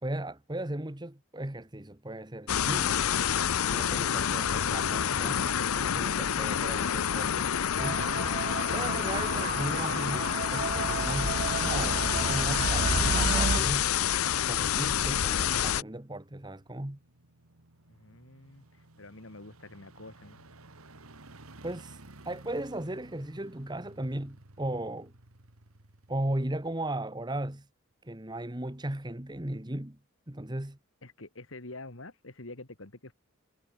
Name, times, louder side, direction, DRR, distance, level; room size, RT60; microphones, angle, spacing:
voice 1, 0.0-3.0 3.7-8.2 8.7-13.9 14.4-17.0 21.6-22.0 22.2-25.1 26.1-27.7 28.0-30.0 30.3-30.8, right 1 dB, 20° right, 1.4 m, -36 dB
sound 1, 2.5-15.8, left 8 dB, 85° left, 0.7 m, -28 dB
sound 2, 7.8-13.6, right 5 dB, 35° right, 0.3 m, -32 dB
sound 3, 14.1-27.5 27.9-28.0, right 2 dB, 85° right, 2.4 m, -56 dB
voice 2, 17.9-20.4 31.0-33.1, left 2 dB, 65° left, 2.4 m, -47 dB
head